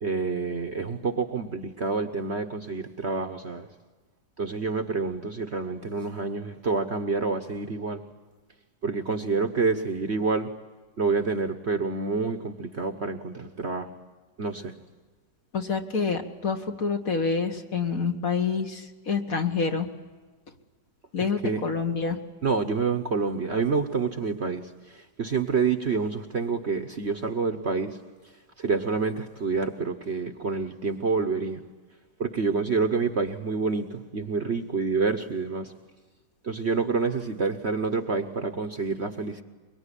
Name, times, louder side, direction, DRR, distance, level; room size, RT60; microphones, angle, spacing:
voice 1, 0.0-3.7 4.4-8.0 8.8-10.5 11.0-13.9 14.4-14.7 21.2-21.6 22.4-24.6 24.9-28.0 28.6-31.6 32.2-35.7 36.4-39.4, right 4 dB, 40° right, 8 dB, 1.2 m, -28 dB
voice 2, 15.5-19.9 21.1-22.2, left 5 dB, 50° left, 5 dB, 2.0 m, -27 dB
23.0 x 23.0 x 10.0 m, 1.3 s
omnidirectional pair, 1.9 m